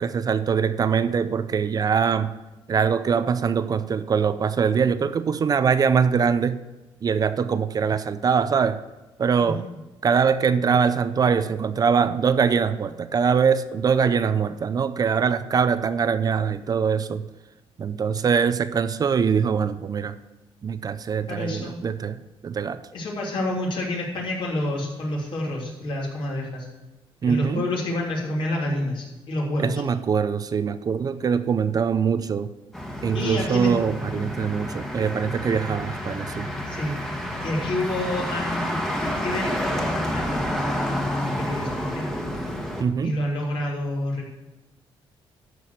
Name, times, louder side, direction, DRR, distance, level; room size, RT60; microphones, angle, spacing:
voice 1, 0.0-2.3 2.7-6.6 7.0-8.8 9.2-9.6 10.0-17.2 17.8-20.1 20.6-22.8 27.2-27.7 29.6-32.5 33.0-36.5 42.8-43.2, right 6 dB, 40° right, 12 dB, 0.5 m, -23 dB
voice 2, 21.3-21.7 22.9-26.7 27.2-29.8 33.1-33.7 36.7-37.0 37.4-42.1 43.0-44.3, left 1 dB, 60° left, -3 dB, 2.9 m, -28 dB
Motor vehicle (road), 32.7-42.8, equal, 5° left, 1.4 m, -29 dB
12.5 x 4.7 x 6.7 m, 1.1 s
cardioid pair, 105°, 10 cm